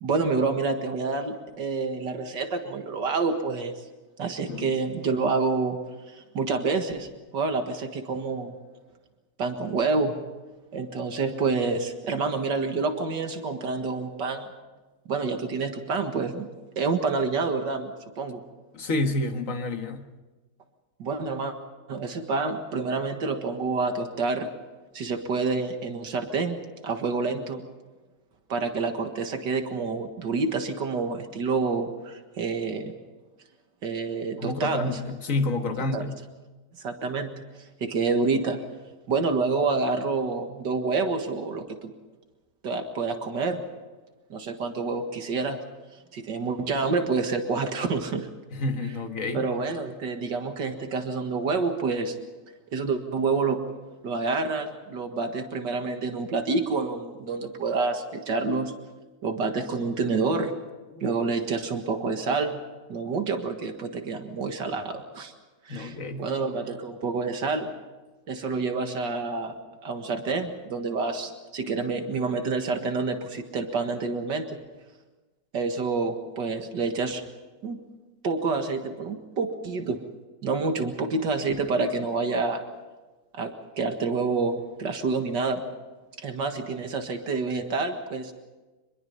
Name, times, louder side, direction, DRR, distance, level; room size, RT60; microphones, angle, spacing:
voice 1, 0.0-3.7 4.2-5.8 6.1-7.1 7.3-8.6 9.4-10.1 10.7-14.5 15.1-16.5 16.8-18.4 21.0-21.5 21.9-24.5 24.9-26.6 26.8-27.6 28.5-32.9 33.8-35.0 35.9-36.0 36.8-37.3 37.8-38.6 39.1-41.9 42.6-43.6 44.3-45.6 46.1-48.3 49.3-52.2 52.7-53.6 54.0-58.7 59.2-60.5 61.0-62.6 62.9-65.3 65.7-67.7 68.3-69.5 69.8-74.6 75.5-77.2 77.6-77.8 78.2-80.0 80.4-82.6 83.3-85.6 86.2-88.3, right 4 dB, 85° right, 6 dB, 2.3 m, -28 dB
voice 2, 18.7-20.1 34.4-36.1 48.5-49.5 60.9-61.0 65.7-66.3, left 2 dB, 50° left, 5 dB, 1.9 m, -29 dB
25.5 x 21.5 x 5.5 m, 1.2 s
omnidirectional pair, 1.8 m